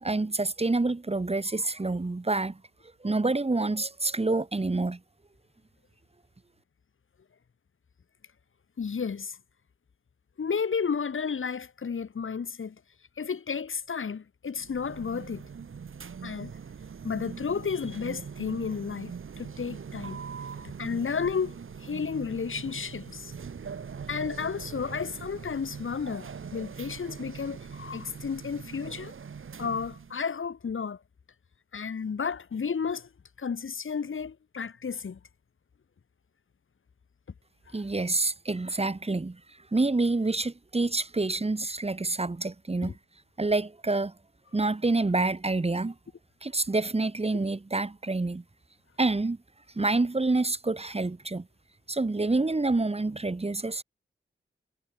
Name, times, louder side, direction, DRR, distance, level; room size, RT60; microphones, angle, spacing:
voice 1, 0.0-2.6 3.0-5.0 37.7-39.4 39.7-42.9 43.4-44.1 44.5-45.9 46.4-48.4 49.0-49.4 49.8-51.5 51.9-53.8, right 3 dB, 30° right, 2.3 m, -27 dB
voice 2, 8.8-9.4 10.4-12.8 13.2-15.5 16.2-16.5 17.0-20.2 20.8-21.5 21.8-23.3 24.1-29.1 29.6-31.0 31.7-33.1 33.4-35.2 37.7-37.8 42.8-42.9, left 6 dB, 75° left, 3.4 m, -32 dB
sound 1, 14.6-30.2, right 6 dB, 80° right, 2.8 m, -42 dB
wide cardioid pair, 85°, 21 cm